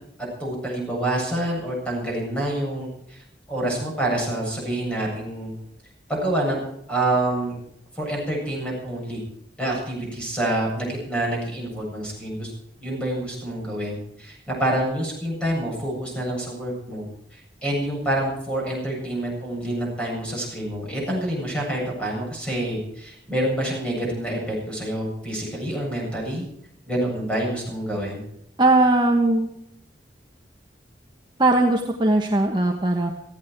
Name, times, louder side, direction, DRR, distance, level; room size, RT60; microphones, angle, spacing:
voice 1, 0.4-5.5 6.1-6.6 6.9-7.6 7.9-9.2 9.6-12.5 12.8-26.5 26.9-28.2, right 1 dB, 5° left, -2 dB, 7.8 m, -27 dB
voice 2, 28.6-29.5 31.4-33.1, right 2 dB, 25° right, 2 dB, 1.4 m, -19 dB
18.0 x 15.5 x 4.7 m, 0.75 s
head